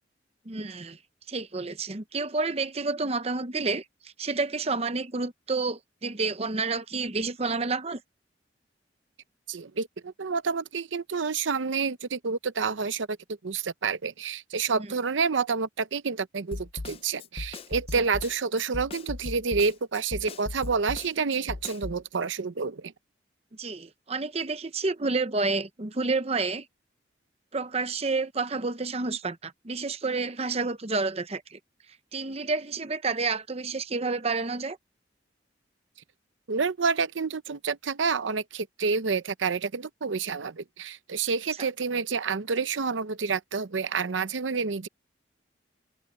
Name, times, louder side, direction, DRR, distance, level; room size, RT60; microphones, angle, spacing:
voice 1, 0.5-1.0 1.3-3.8 4.2-8.0 14.8-14.9 23.6-26.7 27.5-31.6 32.1-34.8, right 3 dB, 35° right, 0.8 m, -29 dB
voice 2, 9.5-13.2 13.4-22.9 36.5-44.9, right 5 dB, 90° right, 0.7 m, -29 dB
Snare drum, 16.5-22.0, left 2 dB, 30° left, 0.5 m, -37 dB
head